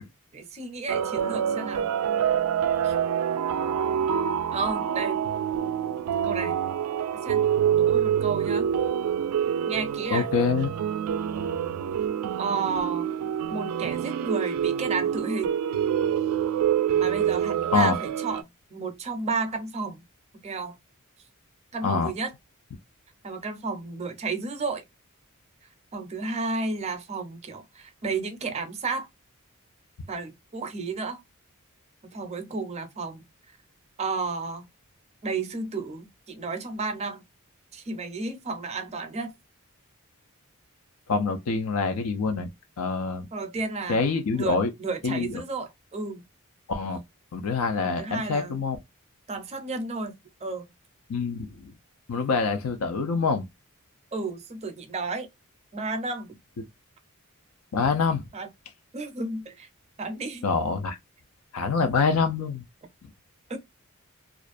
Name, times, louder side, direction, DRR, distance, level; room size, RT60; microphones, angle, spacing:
voice 1, 0.3-1.9 2.8-2.9 4.5-5.2 6.2-6.6 7.1-7.4 7.8-8.7 9.7-10.3 12.4-13.1 13.5-15.5 17.0-20.0 20.4-20.8 21.7-22.3 23.2-24.8 25.9-29.1 30.1-31.2 32.1-33.2 34.0-34.7 35.2-37.2 37.7-39.3 43.3-44.0 44.3-46.2 47.8-48.7 49.3-50.6 54.1-55.3 55.7-56.4 58.3-58.5 58.9-59.7 60.0-60.4 63.5-63.6, right 4 dB, 30° right, 0.5 m, -32 dB
sound 1, 0.9-18.4, right 9 dB, 90° right, 0.3 m, -26 dB
voice 2, 10.1-10.7 17.7-18.0 21.8-22.1 41.1-42.5 42.8-43.3 43.9-44.7 45.0-45.4 46.7-47.0 47.3-48.8 51.1-51.5 52.1-53.4 57.7-58.2 60.4-61.0 61.5-62.6, left 4 dB, 85° left, 0.4 m, -25 dB
2.5 x 2.1 x 2.4 m
head